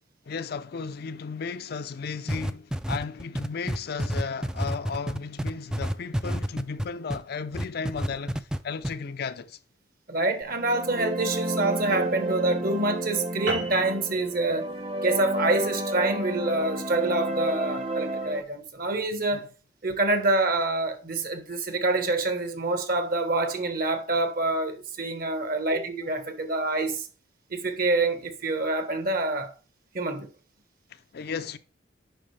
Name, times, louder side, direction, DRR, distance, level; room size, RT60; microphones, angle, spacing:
voice 1, 0.3-9.6 19.3-19.5 30.9-31.6, left 5 dB, 60° left, 0.5 m, -35 dB
sound 1, 2.3-7.2 7.5-8.6 8.8-8.9, equal, 5° right, 0.3 m, -28 dB
voice 2, 10.1-14.7 15.0-19.5 19.8-27.0 27.5-29.5 29.9-30.3, right 2 dB, 55° right, 1.2 m, -26 dB
sound 2, 10.5-18.4, right 1 dB, 35° right, 0.9 m, -30 dB
sound 3, 13.5-18.2, right 2 dB, 90° right, 3.5 m, -38 dB
9.0 x 5.6 x 3.2 m
head